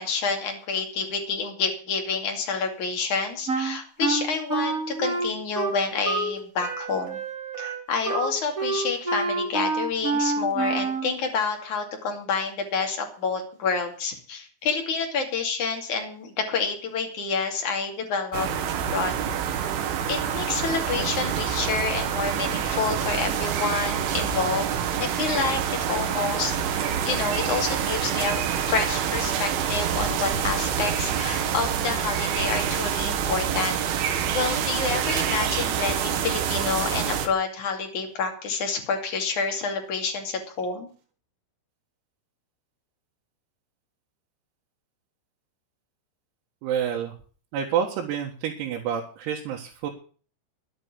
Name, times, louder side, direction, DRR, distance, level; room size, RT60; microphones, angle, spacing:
voice 1, 0.0-7.2 7.6-18.5 18.9-19.1 20.1-24.7 25.0-28.4 28.7-40.9, left 5 dB, 45° left, 3 dB, 3.1 m, -28 dB
Wind instrument woodwind instrument, 3.5-6.3 6.6-11.1, right 3 dB, 30° right, 1.7 m, -28 dB
sound 1, 18.3-37.3, right 8 dB, 70° right, 4.0 m, -27 dB
voice 2, 46.6-47.1 47.5-49.9, right 8 dB, 90° right, -1 dB, 4.4 m, -28 dB
11.5 x 9.6 x 8.4 m, 0.41 s
omnidirectional pair, 6.0 m